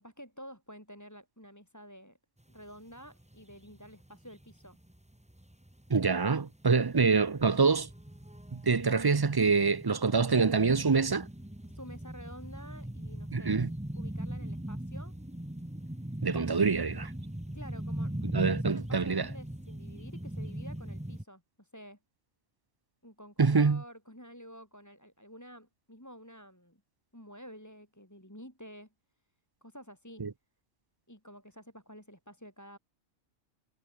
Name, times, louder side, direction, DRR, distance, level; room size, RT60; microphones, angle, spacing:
voice 1, 0.0-2.2 2.5-4.8 11.7-13.7 13.9-15.1 17.5-18.2 18.5-22.0 23.0-26.8 27.1-28.9 29.6-30.3 31.1-32.8, equal, 10° left, 5.3 m, -50 dB
sound 1, 2.6-2.7 3.0-21.2, right 1 dB, 5° right, 1.4 m, -40 dB
voice 2, 5.9-7.9 8.5-11.3 13.3-13.7 16.2-17.1 18.2-19.3 23.4-23.8 30.2-30.3, right 4 dB, 35° right, 0.3 m, -26 dB
omnidirectional pair, 1.4 m